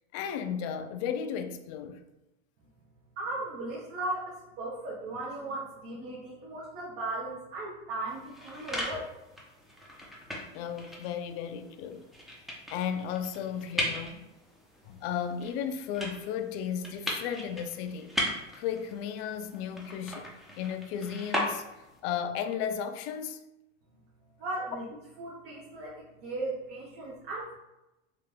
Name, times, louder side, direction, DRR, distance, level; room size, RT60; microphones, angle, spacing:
voice 1, 0.1-2.0 10.5-12.0 12.7-14.3 14.9-18.1 18.5-20.3 20.6-21.7 22.0-23.4, left 8 dB, 55° left, 0.5 m, -34 dB
voice 2, 3.2-9.1 24.4-24.8 25.2-27.6, right 2 dB, 60° right, 1.1 m, -37 dB
sound 1, 8.1-22.0, equal, ahead, 0.5 m, -38 dB
3.4 x 2.4 x 3.3 m
supercardioid pair, 120°, 38 cm